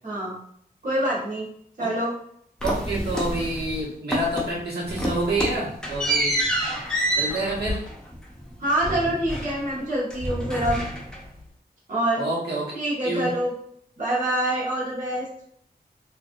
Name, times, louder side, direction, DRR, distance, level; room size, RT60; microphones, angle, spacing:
voice 1, 0.0-0.4 0.8-1.5 1.8-2.1 8.6-10.8 11.9-12.2 12.7-13.5 14.0-15.3, right 1 dB, 50° right, -7 dB, 1.2 m, -25 dB
sound 1, 2.6-3.8 4.1-4.6 4.9-9.8 10.1-11.4, right 1 dB, 5° left, 0.7 m, -28 dB
voice 2, 2.6-6.4 7.2-7.8 12.2-12.7 13.0-13.3, right 2 dB, 80° right, -6 dB, 1.2 m, -28 dB
4.1 x 2.5 x 2.6 m, 0.68 s
wide cardioid pair, 135°, 17 cm